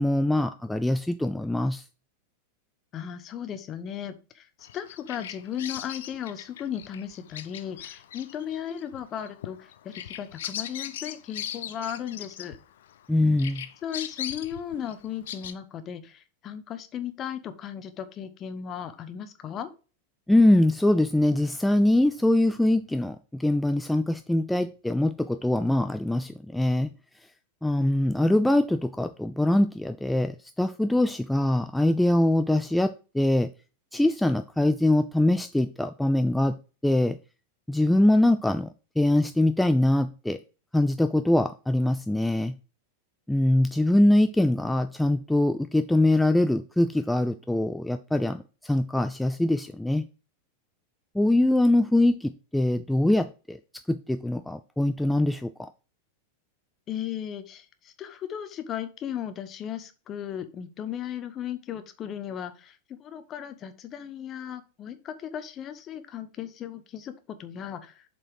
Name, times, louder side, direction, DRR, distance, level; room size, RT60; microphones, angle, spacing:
voice 1, 0.0-1.8 13.1-13.7 20.3-26.9 27.6-33.5 33.9-36.6 36.8-37.2 37.7-40.4 40.7-42.6 43.3-50.1 51.1-53.6 53.9-55.7, left 1 dB, 5° left, 9 dB, 0.4 m, -23 dB
voice 2, 2.9-12.6 13.8-19.7 56.9-67.1 67.4-68.0, left 9 dB, 30° left, 10 dB, 1.0 m, -36 dB
Bird vocalization bird call bird song, 4.6-13.1 13.4-15.5, left 11 dB, 60° left, 0.6 m, -39 dB
7.4 x 4.4 x 4.9 m, 0.34 s
figure-of-eight pair, 90°, 0 cm